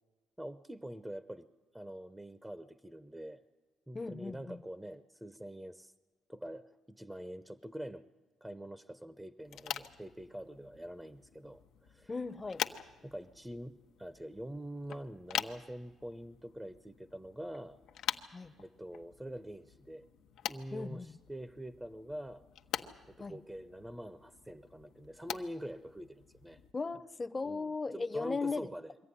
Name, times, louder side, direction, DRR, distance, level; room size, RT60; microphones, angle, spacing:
voice 1, 0.4-1.5 1.7-3.4 3.9-5.9 6.3-8.1 8.4-12.1 13.0-17.8 18.6-20.1 20.5-22.4 23.1-26.6 27.4-29.1, right 1 dB, 5° right, 0.7 m, -45 dB
voice 2, 3.9-4.6 12.1-12.6 18.3-18.5 20.7-21.1 23.2-23.4 26.7-28.7, left 4 dB, 25° left, 0.8 m, -37 dB
sound 1, 9.4-26.7, left 10 dB, 80° left, 0.9 m, -45 dB
23.0 x 14.5 x 9.9 m
cardioid pair, 90°, 0 cm